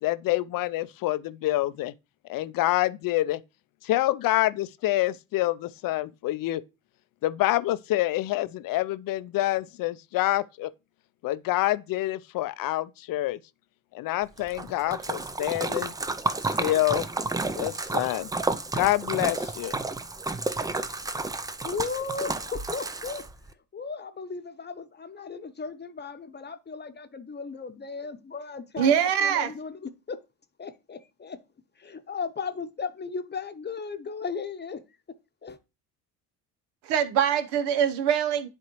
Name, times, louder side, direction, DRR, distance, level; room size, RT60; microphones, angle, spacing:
voice 1, 0.0-1.9 2.3-3.4 3.8-6.6 7.2-10.7 11.2-13.4 13.9-15.9 16.6-17.1 17.5-18.3 18.7-19.8, left 16 dB, 50° left, 0.6 m, -27 dB
Splash splatter, 14.4-23.5, right 3 dB, 10° right, 0.4 m, -31 dB
voice 2, 21.6-23.2 23.7-30.2 30.6-31.4 31.8-34.8 35.4-35.6, left 5 dB, 25° left, 0.9 m, -36 dB
voice 3, 28.8-29.5 36.9-38.5, right 8 dB, 65° right, 1.0 m, -23 dB
10.5 x 3.8 x 3.0 m
hypercardioid pair, 55°, 44 cm